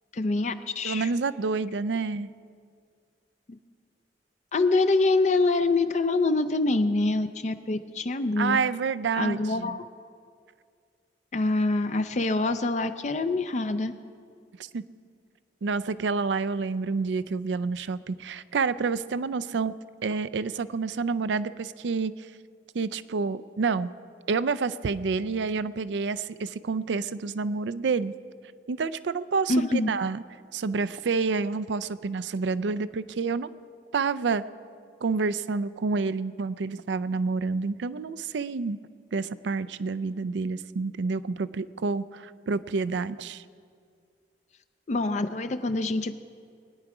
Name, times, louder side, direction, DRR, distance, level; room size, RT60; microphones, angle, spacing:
voice 1, 0.1-1.1 3.5-3.6 4.5-8.6 9.2-9.8 11.3-13.9 29.5-29.9 44.9-46.1, left 2 dB, 40° left, 9 dB, 0.5 m, -25 dB
voice 2, 0.8-2.3 8.4-9.8 14.7-14.8 15.6-19.7 20.0-22.3 22.7-23.9 24.3-28.1 28.7-30.2 30.5-33.5 33.9-34.4 35.0-38.8 39.1-43.4, right 4 dB, 85° right, 16 dB, 0.4 m, -28 dB
21.0 x 10.0 x 4.9 m, 2.2 s
head